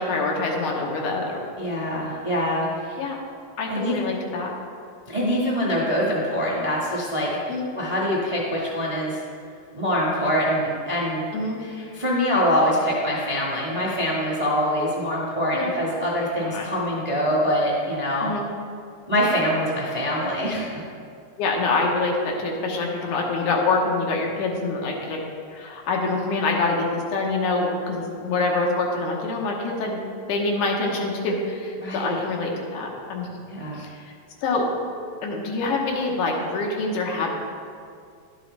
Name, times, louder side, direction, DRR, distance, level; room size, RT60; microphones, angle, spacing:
voice 1, 0.0-1.4 3.0-3.2 3.6-4.5 7.4-7.7 11.3-11.6 15.5-15.7 16.4-16.7 18.2-18.5 21.4-25.2 25.5-30.0 30.3-33.4 33.7-34.0 34.4-34.7 35.2-37.4, left 3 dB, 85° left, 0 dB, 2.6 m, -25 dB
voice 2, 1.6-3.0 3.7-4.0 5.1-7.3 7.7-9.2 9.7-11.2 11.6-18.3 19.1-20.7 31.8-32.2 33.5-33.8, equal, 30° right, -5 dB, 0.7 m, -24 dB
11.5 x 7.6 x 3.3 m, 2.3 s
omnidirectional pair, 3.4 m